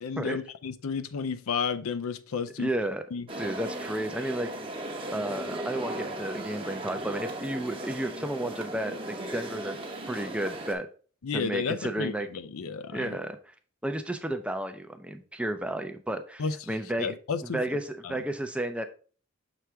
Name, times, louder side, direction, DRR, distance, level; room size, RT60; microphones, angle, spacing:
voice 1, 0.0-2.7 3.1-3.3 11.2-13.2 16.4-17.6 18.0-18.2, left 5 dB, 85° left, 0.5 m, -32 dB
voice 2, 2.6-3.0 3.4-4.5 5.1-9.8 10.1-10.9 11.3-12.3 12.9-13.5 13.8-17.1 17.4-18.9, right 1 dB, 5° right, 0.4 m, -32 dB
sound 1, 3.3-10.7, right 1 dB, 25° right, 0.8 m, -37 dB
6.1 x 3.4 x 4.5 m
head